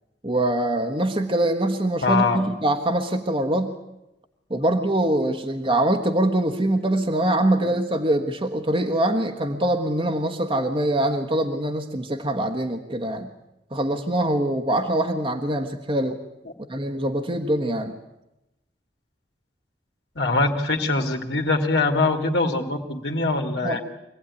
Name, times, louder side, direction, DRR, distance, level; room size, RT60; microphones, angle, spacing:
voice 1, 0.2-3.7 4.5-13.3 13.7-16.2 16.7-18.0 23.6-23.8, right 1 dB, 30° right, 4 dB, 1.4 m, -23 dB
voice 2, 2.0-2.4 7.6-7.7 20.2-23.8, left 3 dB, 75° left, 3 dB, 2.4 m, -23 dB
25.0 x 17.0 x 9.8 m, 0.93 s
head